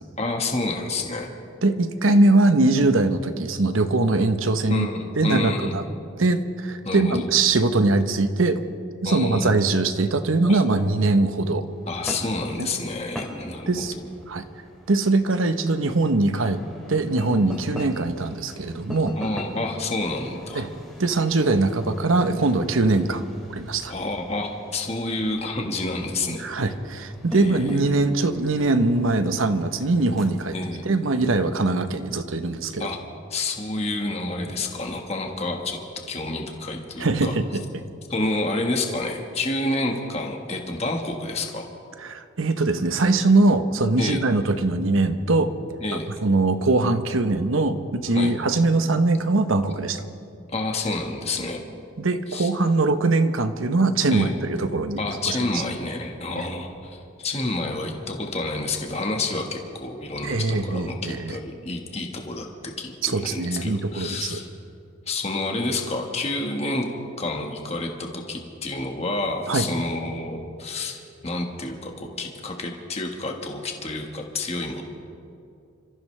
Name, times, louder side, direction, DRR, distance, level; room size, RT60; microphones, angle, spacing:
voice 1, 0.2-1.3 4.7-5.8 6.8-7.3 9.0-9.5 10.5-10.6 11.9-14.0 19.2-20.7 23.9-26.4 27.3-27.9 30.5-30.8 32.8-33.0 33.3-35.8 36.1-37.3 38.1-41.7 44.0-44.2 45.8-46.1 48.1-48.3 50.5-51.6 52.3-52.5 54.1-54.3 55.0-64.5 65.1-66.9 67.2-74.8, left 2 dB, 30° left, 2 dB, 1.5 m, -29 dB
voice 2, 1.6-4.9 5.2-5.8 6.2-8.6 9.0-11.6 12.6-12.7 13.7-13.9 14.3-14.4 14.9-16.6 16.9-19.1 20.5-20.7 21.0-23.9 26.4-30.5 30.8-32.9 37.0-37.4 42.0-45.5 46.2-50.0 52.0-55.0 55.3-55.4 56.4-56.5 60.2-61.4 63.0-64.4 69.5-69.6, right 2 dB, 80° right, 9 dB, 1.0 m, -22 dB
sound 1, 11.6-30.7, equal, ahead, 2.5 m, -41 dB
28.5 x 14.5 x 3.3 m, 2.6 s
head